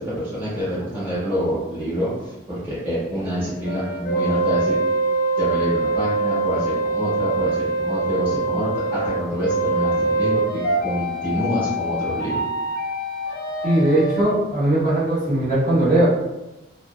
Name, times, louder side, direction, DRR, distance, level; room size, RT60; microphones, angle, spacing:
voice 1, 0.0-4.7 5.4-12.4, equal, 10° right, -11 dB, 1.0 m, -27 dB
sound 1, 3.6-14.2, right 2 dB, 50° left, 0.4 m, -24 dB
voice 2, 13.6-16.0, right 1 dB, 45° right, -10 dB, 1.2 m, -19 dB
2.6 x 2.1 x 2.3 m, 1.0 s
head